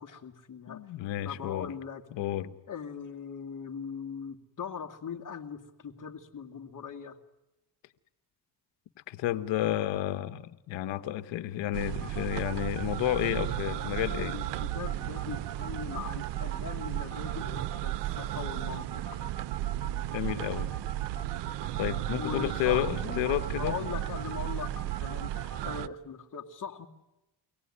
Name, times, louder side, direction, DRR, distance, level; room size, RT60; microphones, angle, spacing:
voice 1, 0.0-0.8 1.2-2.0 2.7-7.2 14.2-19.2 22.2-23.2 23.6-26.9, left 7 dB, 45° left, 5 dB, 2.2 m, -40 dB
voice 2, 0.7-1.7 2.1-2.5 9.1-14.4 20.1-20.7 21.8-23.8, left 13 dB, 85° left, 11 dB, 1.2 m, -31 dB
sound 1, 11.7-25.9, right 14 dB, 70° right, 0.8 m, -34 dB
sound 2, 12.0-25.7, right 8 dB, 45° right, 3.5 m, -42 dB
24.0 x 17.5 x 9.8 m, 0.98 s
supercardioid pair, 75°, 44 cm